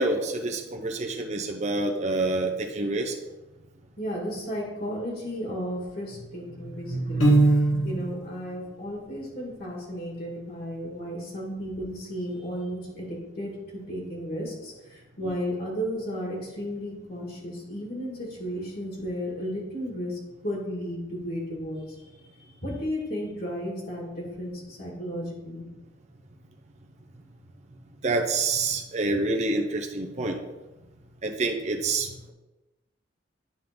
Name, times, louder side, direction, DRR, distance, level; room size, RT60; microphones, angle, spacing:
voice 1, 0.0-3.1 6.9-8.1 15.2-15.3 28.0-30.4 31.2-32.3, right 3 dB, 35° right, 2 dB, 0.7 m, -27 dB
voice 2, 4.0-7.3 7.8-21.8 22.6-25.7, equal, 50° left, -2 dB, 2.1 m, -34 dB
Piano, 7.2-8.2, right 2 dB, 90° left, 1.6 m, -20 dB
9.4 x 3.7 x 5.2 m, 1.1 s
head